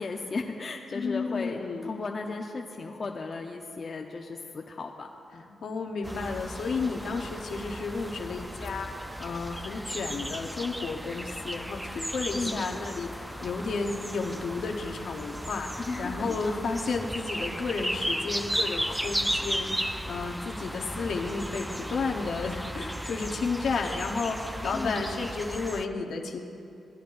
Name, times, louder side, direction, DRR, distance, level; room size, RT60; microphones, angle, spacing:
voice 1, 0.0-5.6 12.3-12.6 15.8-16.7 24.7-25.0, left 3 dB, 50° left, 2 dB, 0.6 m, -35 dB
voice 2, 0.9-2.0 5.6-26.4, left 4 dB, 75° left, 2 dB, 0.9 m, -32 dB
sound 1, 6.0-25.9, equal, 5° right, 0.4 m, -35 dB
16.0 x 10.0 x 2.5 m, 2.6 s
supercardioid pair, 55°, 0 cm